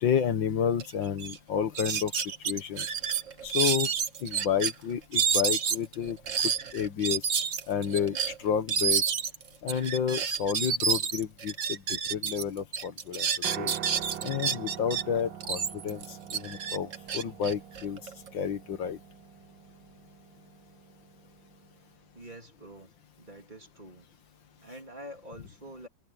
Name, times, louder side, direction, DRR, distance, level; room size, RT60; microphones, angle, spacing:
voice 1, 0.0-2.1 2.5-2.9 3.4-3.9 4.2-6.2 6.7-7.2 7.7-9.0 9.6-13.7 14.2-16.0 16.3-18.0 18.3-19.0, left 8 dB, 90° left, 2.2 m, -30 dB
sound 1, 0.8-0.9 1.2-1.4 1.7-4.7 5.1-12.4 12.7-15.0 15.4-18.3, right 7 dB, 45° right, 1.4 m, -29 dB
Piano, 13.4-21.7, right 9 dB, 85° right, 1.7 m, -44 dB
voice 2, 22.1-22.9 23.2-24.1 24.6-25.9, right 1 dB, 25° right, 3.3 m, -46 dB
omnidirectional pair, 2.0 m